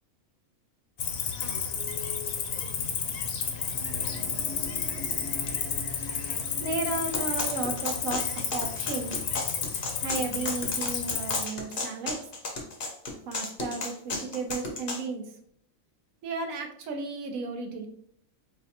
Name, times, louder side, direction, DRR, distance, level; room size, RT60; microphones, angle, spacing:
Cricket, 1.0-11.4, left 7 dB, 80° left, 1.0 m, -31 dB
sound 1, 3.4-8.0, left 2 dB, 30° right, 1.5 m, -43 dB
voice 1, 6.6-9.1 10.0-12.2 13.3-15.3 16.2-17.9, right 3 dB, 75° right, 4 dB, 1.1 m, -34 dB
sound 2, 7.1-15.0, left 2 dB, 50° left, 0.7 m, -34 dB
4.2 x 2.6 x 2.8 m, 0.64 s
omnidirectional pair, 1.5 m